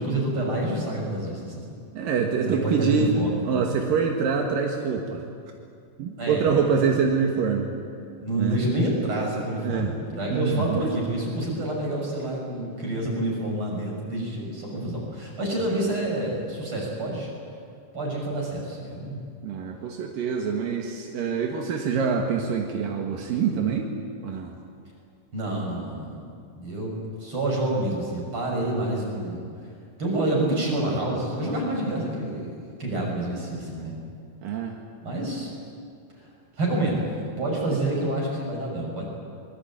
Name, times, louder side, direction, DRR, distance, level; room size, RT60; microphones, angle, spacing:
voice 1, 0.0-1.7 2.5-3.5 6.2-6.9 8.2-17.3 17.9-19.2 25.3-26.3 26.5-29.4 30.0-34.0 35.0-35.5 36.2-36.3 36.6-39.1, right 1 dB, 40° right, -2 dB, 7.2 m, -28 dB
voice 2, 1.9-3.1 3.4-5.2 6.0-7.7 8.4-8.6 9.6-9.9 10.3-10.8 19.4-24.0 24.2-24.5 34.4-34.7 37.7-37.8, right 6 dB, 85° right, 2 dB, 3.3 m, -25 dB
24.0 x 21.5 x 8.9 m, 2.4 s
omnidirectional pair, 3.9 m